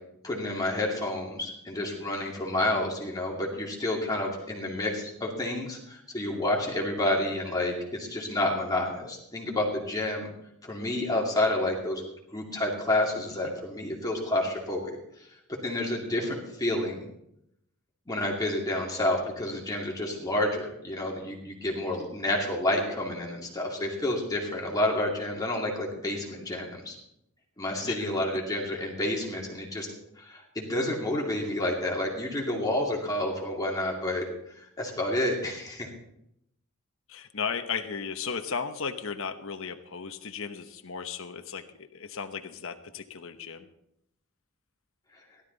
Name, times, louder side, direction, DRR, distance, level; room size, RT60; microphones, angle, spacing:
voice 1, 0.2-10.3 10.6-12.0 12.3-15.0 15.5-17.1 18.1-27.0 27.6-29.9 30.2-34.2 34.5-35.9, left 1 dB, 15° left, -2 dB, 2.3 m, -29 dB
voice 2, 37.1-43.7, left 6 dB, 65° left, 8 dB, 1.0 m, -35 dB
16.5 x 12.5 x 4.0 m, 0.78 s
head